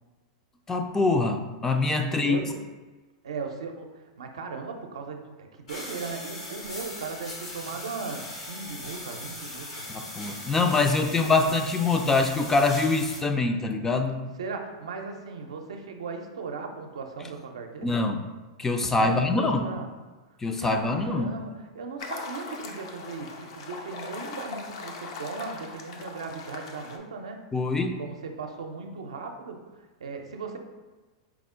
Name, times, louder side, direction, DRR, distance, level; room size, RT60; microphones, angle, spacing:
voice 1, 0.7-2.4 9.9-14.2 17.8-18.2 18.6-19.7 20.4-21.3 27.5-28.0, left 3 dB, 15° left, 5 dB, 0.3 m, -24 dB
voice 2, 2.0-2.5 3.2-5.3 5.6-9.8 11.1-11.2 14.4-17.9 19.0-19.9 20.6-27.4 28.0-29.6 30.0-30.6, right 4 dB, 85° right, 4 dB, 0.5 m, -37 dB
sound 1, 5.7-13.2, left 1 dB, 80° left, 1.2 m, -39 dB
sound 2, 22.0-27.0, left 4 dB, 65° left, 0.5 m, -40 dB
4.7 x 2.1 x 3.6 m, 1.2 s
hypercardioid pair, 120°, 3 cm